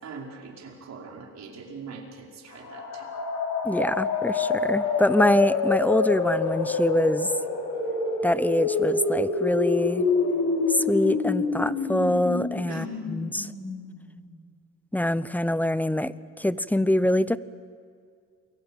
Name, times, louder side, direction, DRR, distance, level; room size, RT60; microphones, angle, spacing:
voice 1, 0.0-3.1 12.7-12.9, right 5 dB, 60° right, 0 dB, 5.3 m, -42 dB
sound 1, 2.5-14.2, left 4 dB, 85° left, 6.3 m, -27 dB
voice 2, 3.6-7.3 8.2-10.0 10.7-13.5 14.9-17.4, left 1 dB, 5° left, 16 dB, 0.8 m, -24 dB
28.5 x 22.5 x 9.1 m, 2.1 s
cardioid pair, 90°, 30 cm